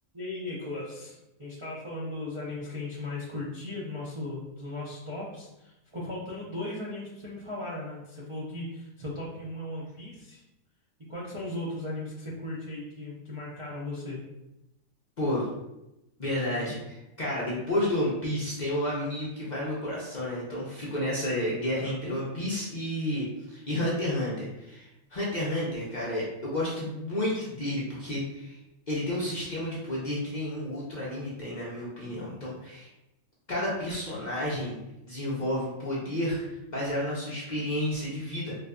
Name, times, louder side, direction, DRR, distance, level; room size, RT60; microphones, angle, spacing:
voice 1, 0.1-10.4 11.1-14.2, left 2 dB, 35° right, -8 dB, 0.5 m, -37 dB
voice 2, 15.2-15.5 16.2-28.6 28.9-32.9 33.5-34.8 35.1-38.6, left 1 dB, 45° left, -6 dB, 0.7 m, -31 dB
4.2 x 2.5 x 2.2 m, 0.90 s
omnidirectional pair, 1.4 m